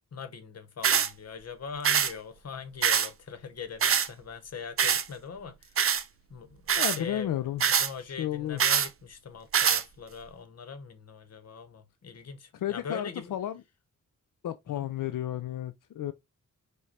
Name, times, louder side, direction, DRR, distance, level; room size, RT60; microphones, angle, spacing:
voice 1, 0.1-5.8 6.3-13.3 14.7-14.9, left 5 dB, 50° left, 0.9 m, -42 dB
sound 1, 0.8-1.1 1.8-2.1 2.8-3.1 3.8-4.1 4.8-5.0 5.8-6.0 6.7-7.0 7.6-7.9 8.6-8.9 9.5-9.8, right 7 dB, 45° right, 0.5 m, -24 dB
voice 2, 6.7-7.6 8.0-8.6 12.6-13.6 14.4-16.1, left 11 dB, 80° left, 0.5 m, -32 dB
5.0 x 2.2 x 4.2 m
wide cardioid pair, 145°, 32 cm